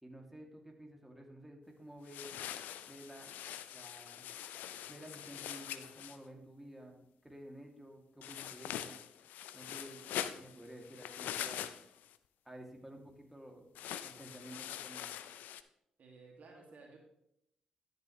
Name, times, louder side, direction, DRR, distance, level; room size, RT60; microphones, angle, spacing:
voice 1, 0.0-2.4 2.9-3.4 3.7-4.3 4.9-9.0 9.5-11.7 12.4-15.1, right 1 dB, 5° right, 1 dB, 2.4 m, -52 dB
sound 1, 2.1-6.2 8.2-12.2 13.7-15.6, left 11 dB, 80° left, 0.4 m, -43 dB
voice 2, 16.0-17.0, right 3 dB, 60° right, 0 dB, 2.1 m, -55 dB
13.0 x 6.8 x 3.1 m, 0.78 s
hypercardioid pair, 40°, 3 cm